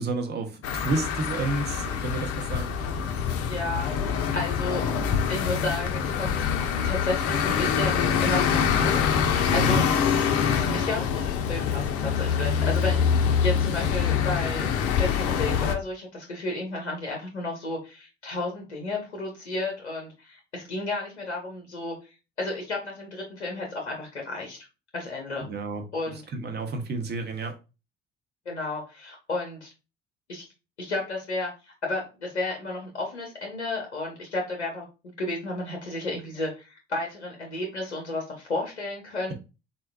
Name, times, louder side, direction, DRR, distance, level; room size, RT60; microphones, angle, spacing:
voice 1, 0.0-2.7 9.5-9.8 25.4-25.8 26.3-27.5, right 3 dB, 30° right, 0.7 m, -30 dB
sound 1, 0.6-15.7, left 7 dB, 45° left, 0.5 m, -25 dB
voice 2, 3.5-4.8 5.3-6.4 6.8-9.8 10.7-22.0 22.4-24.6 24.9-25.5 25.9-26.2 28.5-29.7 30.3-30.4 30.8-34.8 35.2-39.3, left 2 dB, 90° left, 0.7 m, -32 dB
3.8 x 2.2 x 2.2 m
figure-of-eight pair, 55°, 33 cm